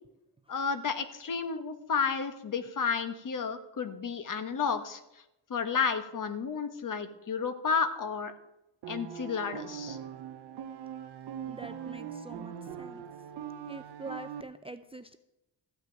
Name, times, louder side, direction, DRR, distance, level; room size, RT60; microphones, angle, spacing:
voice 1, 0.5-5.0 5.5-8.3 8.9-10.0, left 6 dB, 45° left, 10 dB, 1.3 m, -31 dB
sound 1, 8.8-14.4, right 8 dB, 60° right, 1.0 m, -41 dB
voice 2, 11.5-13.0 13.7-15.2, right 2 dB, 15° right, 11 dB, 0.4 m, -45 dB
14.0 x 6.0 x 9.0 m, 0.88 s
cardioid pair, 125°, 44 cm